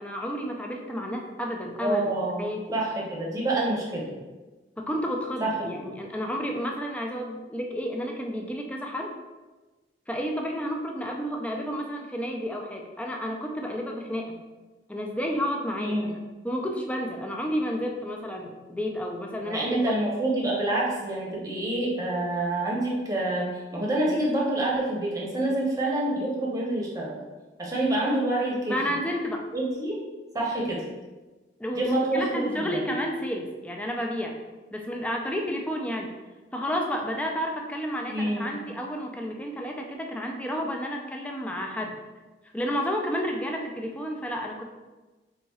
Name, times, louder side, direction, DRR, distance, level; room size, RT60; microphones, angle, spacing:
voice 1, 0.0-2.6 4.8-9.1 10.1-14.4 14.9-16.2 16.4-19.9 28.7-29.5 31.6-34.3 34.7-36.1 36.5-42.0 42.5-44.6, equal, 10° left, 1 dB, 0.4 m, -31 dB
voice 2, 1.8-2.4 2.7-4.1 5.4-5.5 15.8-16.1 19.5-23.5 23.7-27.1 27.6-28.8 29.5-30.0 30.3-30.8 31.7-32.8 38.1-38.5, right 1 dB, 20° right, -4 dB, 0.8 m, -27 dB
4.1 x 4.0 x 2.3 m, 1.2 s
head